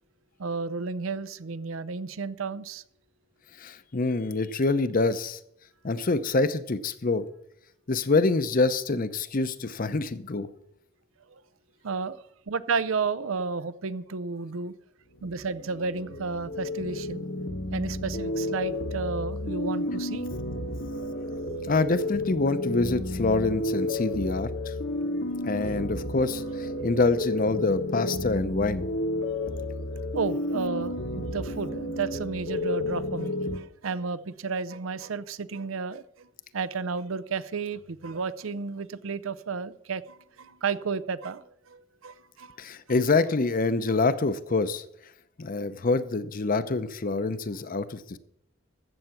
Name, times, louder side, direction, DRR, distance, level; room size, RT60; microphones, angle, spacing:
voice 1, 0.4-2.8 11.3-11.4 11.8-14.7 15.2-17.2 17.7-20.3 30.1-36.3 36.5-42.6, right 4 dB, 90° right, 0.6 m, -32 dB
voice 2, 3.6-5.4 5.8-7.3 7.9-10.5 21.6-24.7 25.0-25.1 25.4-28.8 42.6-44.8 45.4-48.2, left 3 dB, 45° left, 0.7 m, -26 dB
sound 1, 15.2-33.6, left 1 dB, 65° left, 1.2 m, -32 dB
14.0 x 8.0 x 5.9 m
head